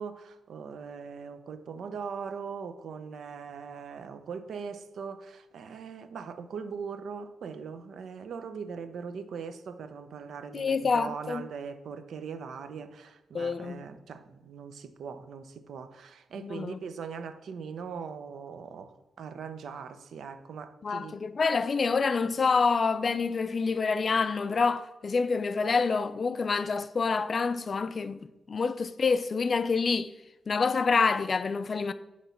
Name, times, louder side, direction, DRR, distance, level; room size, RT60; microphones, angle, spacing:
voice 1, 0.0-21.2, right 6 dB, 75° right, 0.6 m, -40 dB
voice 2, 10.5-11.4 13.3-13.9 16.4-16.8 20.8-30.1 30.5-31.9, left 4 dB, 40° left, 0.3 m, -27 dB
9.3 x 3.1 x 5.6 m
wide cardioid pair, 135°, 0 cm